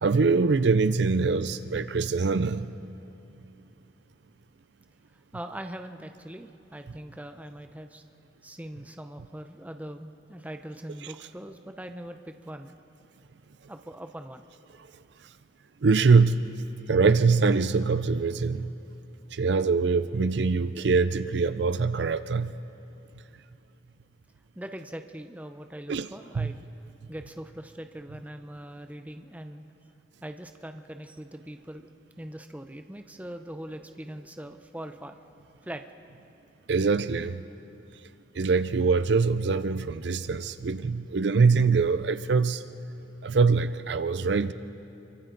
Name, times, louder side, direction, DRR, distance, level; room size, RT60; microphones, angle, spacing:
voice 1, 0.0-2.7 15.8-16.4 16.9-18.7 19.3-22.5 25.9-26.1 26.4-26.5 36.7-37.4 38.3-42.6 43.2-44.5, right 4 dB, 65° right, 13 dB, 0.5 m, -23 dB
voice 2, 5.3-8.0 8.4-12.8 13.7-14.5 24.6-26.7 27.1-29.6 30.2-31.9 32.2-35.2 35.6-35.8, right 1 dB, 10° right, 7 dB, 0.7 m, -41 dB
29.0 x 23.5 x 4.0 m, 2.9 s
head